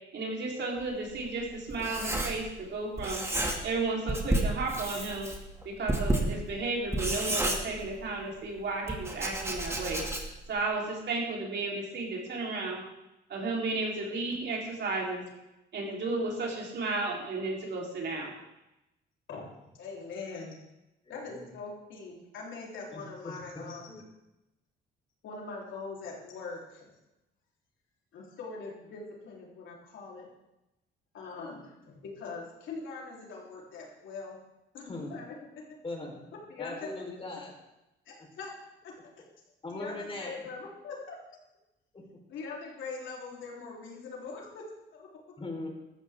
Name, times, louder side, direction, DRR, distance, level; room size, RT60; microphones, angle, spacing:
voice 1, 0.1-3.2 3.6-5.3 5.6-10.0 10.5-12.8 13.3-15.2 15.7-18.3, right 3 dB, 60° right, -2 dB, 3.9 m, -33 dB
Writing, 0.8-2.7 3.0-3.8 4.1-8.2 8.9-10.5, right 1 dB, 15° right, 2.3 m, -31 dB
voice 2, 19.8-20.6 21.1-24.0 25.2-26.9 28.1-30.3 31.1-34.4 34.7-35.2 36.5-36.9 38.1-38.5 39.2-39.3 39.7-41.4 42.3-44.6 44.9-45.2, left 4 dB, 75° left, -3 dB, 3.9 m, -42 dB
voice 3, 21.0-21.5 22.9-24.0 34.9-35.1 35.8-36.1 36.6-37.5 39.6-40.4 41.9-42.0 45.4-45.7, left 2 dB, 25° left, 1 dB, 4.2 m, -40 dB
14.5 x 13.0 x 3.7 m, 0.95 s
cardioid pair, 90°, 20 cm